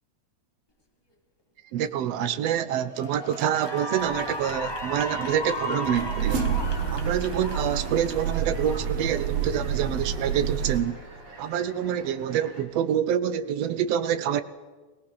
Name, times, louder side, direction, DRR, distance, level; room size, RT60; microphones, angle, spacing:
voice 1, 1.7-6.4 6.9-11.0 11.4-14.4, right 9 dB, 80° right, 1.4 m, -26 dB
Cheering / Applause, 2.1-2.4 2.8-9.4, left 1 dB, 10° left, 1.2 m, -35 dB
sound 1, 3.9-10.8, right 7 dB, 55° right, 2.2 m, -29 dB
sound 2, 6.6-12.6, right 2 dB, 40° right, 4.2 m, -46 dB
26.0 x 17.5 x 5.7 m
omnidirectional pair, 4.0 m